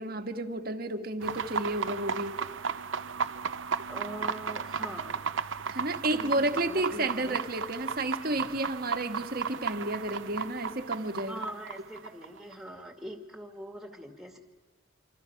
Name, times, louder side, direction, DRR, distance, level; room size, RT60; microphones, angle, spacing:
voice 1, 0.0-2.4 5.7-11.4, right 1 dB, 45° right, 6 dB, 1.5 m, -31 dB
sound 1, 1.2-12.7, right 6 dB, 65° right, 0.7 m, -35 dB
voice 2, 3.9-5.2 6.1-7.4 11.3-14.4, equal, ahead, 4 dB, 2.1 m, -42 dB
27.0 x 26.0 x 5.9 m, 1.3 s
head